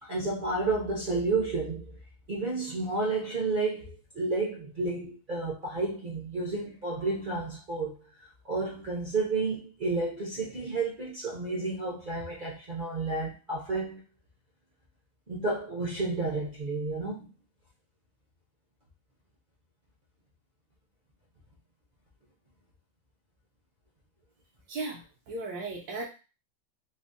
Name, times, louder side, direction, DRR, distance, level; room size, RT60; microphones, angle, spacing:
voice 1, 0.0-2.0 2.3-8.0 8.4-14.0 15.3-17.2, right 3 dB, 45° right, -5 dB, 0.6 m, -31 dB
voice 2, 24.7-26.1, right 3 dB, 75° right, -2 dB, 1.2 m, -36 dB
3.3 x 2.1 x 2.5 m, 0.31 s
omnidirectional pair, 1.9 m